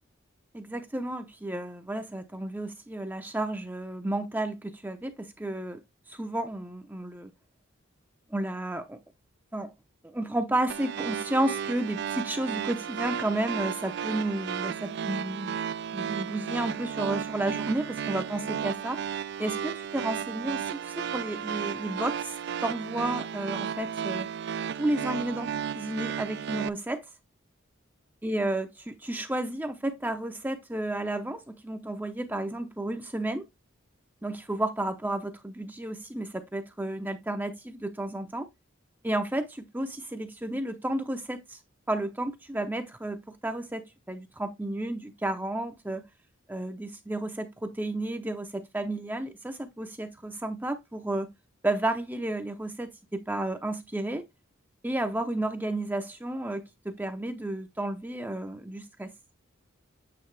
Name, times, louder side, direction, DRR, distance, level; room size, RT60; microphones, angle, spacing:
voice 1, 0.5-5.8 6.1-7.3 8.3-9.0 9.5-9.7 10.0-15.6 15.9-19.0 19.4-22.3 22.6-24.3 24.7-27.1 28.2-33.5 34.2-38.5 39.0-41.6 41.9-46.1 46.5-51.3 51.6-54.2 54.8-59.1, right 1 dB, 10° right, 0.6 m, -32 dB
sound 1, 10.7-26.7, right 8 dB, 55° right, 0.3 m, -34 dB
8.7 x 3.6 x 3.2 m
head